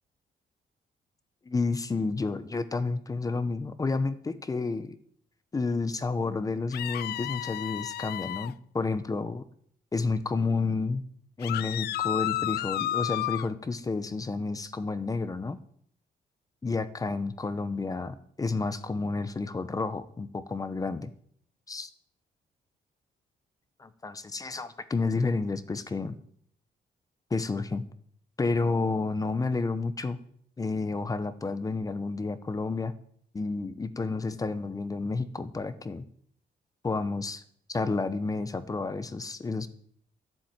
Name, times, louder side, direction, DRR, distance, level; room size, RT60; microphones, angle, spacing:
voice 1, 1.4-5.0 5.5-9.4 9.9-11.0 11.4-15.6 16.6-21.1 21.7-21.9 23.8-26.2 27.3-27.8 28.4-30.2 30.6-32.9 33.3-36.0 36.8-37.4 37.7-39.7, left 3 dB, 20° left, 12 dB, 0.9 m, -30 dB
sound 1, 6.7-8.5 11.4-13.5, left 14 dB, 80° left, 0.5 m, -32 dB
13.0 x 7.4 x 9.2 m, 0.62 s
cardioid pair, 135°, 17 cm